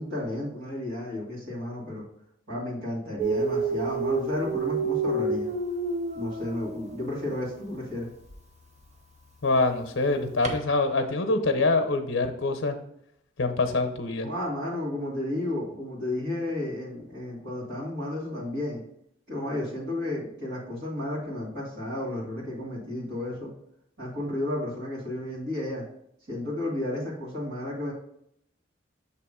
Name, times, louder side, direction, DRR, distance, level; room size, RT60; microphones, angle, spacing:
voice 1, 0.0-2.0 2.5-5.5 6.1-8.1 14.2-18.8 19.3-23.5 24.0-25.8 26.3-27.9, left 1 dB, 60° right, -7 dB, 1.7 m, -32 dB
Dog, 3.2-7.2 8.2-8.4 10.4-10.6, right 3 dB, 35° right, 0.6 m, -29 dB
voice 2, 9.4-12.8 13.4-14.3, left 3 dB, 85° left, 7 dB, 0.7 m, -25 dB
6.8 x 2.9 x 4.9 m, 0.73 s
head